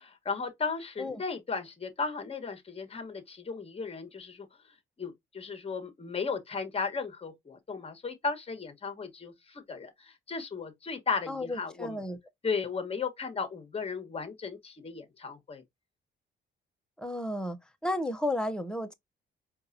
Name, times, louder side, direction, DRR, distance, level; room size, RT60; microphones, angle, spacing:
voice 1, 0.0-4.5 5.0-12.0 12.4-15.6, left 5 dB, 30° left, 1.2 m, -35 dB
voice 2, 11.3-12.2 17.0-17.6 17.8-18.9, left 1 dB, 5° left, 0.8 m, -32 dB
4.5 x 2.5 x 2.6 m
cardioid pair, 90°, 20 cm